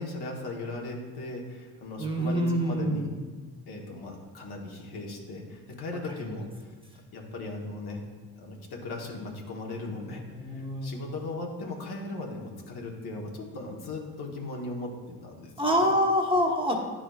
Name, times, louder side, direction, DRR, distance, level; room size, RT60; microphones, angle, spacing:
voice 1, 0.0-3.1 3.7-6.5 7.1-8.0 8.4-15.9, left 2 dB, 70° left, -1 dB, 1.3 m, -38 dB
voice 2, 2.0-3.4 10.0-11.0 15.6-16.9, equal, 15° right, 0 dB, 1.2 m, -26 dB
9.8 x 4.9 x 2.4 m, 1.4 s
supercardioid pair, 60°, 40 cm